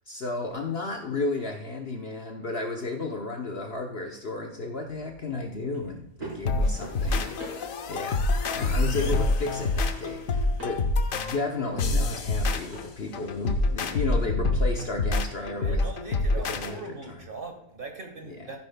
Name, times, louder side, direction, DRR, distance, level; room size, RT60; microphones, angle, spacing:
voice 1, 0.1-8.3 8.5-15.9 16.3-17.3 18.2-18.6, left 2 dB, 50° left, 2 dB, 0.9 m, -33 dB
sound 1, 4.7-15.6, right 1 dB, 90° right, 4.7 m, -47 dB
sound 2, 6.5-16.7, left 2 dB, 65° left, 1.2 m, -26 dB
voice 2, 15.4-18.6, right 3 dB, 35° right, 3 dB, 1.6 m, -40 dB
14.0 x 10.0 x 2.2 m, 0.89 s
omnidirectional pair, 1.6 m